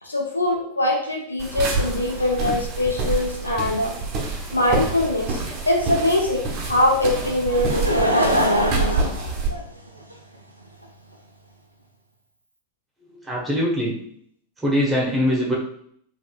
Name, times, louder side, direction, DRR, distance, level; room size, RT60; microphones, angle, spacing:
voice 1, 0.0-3.9 4.5-5.4 5.7-9.1, left 1 dB, 80° left, -2 dB, 0.8 m, -23 dB
sound 1, 1.4-9.5, right 3 dB, 35° right, 0.9 m, -27 dB
Laughter / Crowd, 7.5-10.1 10.8-10.9, equal, 85° right, 0.4 m, -23 dB
voice 2, 13.2-14.0 14.6-15.5, equal, 10° right, -3 dB, 1.2 m, -22 dB
4.3 x 2.7 x 2.4 m, 0.64 s
figure-of-eight pair, 90°, 0 cm